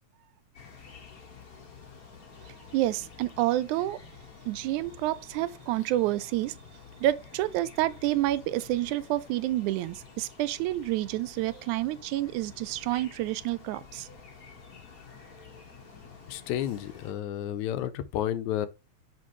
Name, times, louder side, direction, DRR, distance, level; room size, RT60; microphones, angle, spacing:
sound 1, 0.5-17.1, left 5 dB, 45° left, 1.1 m, -50 dB
voice 1, 2.7-4.0 4.5-6.6 7.0-14.1, right 15 dB, 90° right, 2.0 m, -29 dB
voice 2, 16.3-18.7, left 11 dB, 85° left, 2.0 m, -31 dB
6.2 x 5.1 x 3.1 m
omnidirectional pair, 3.3 m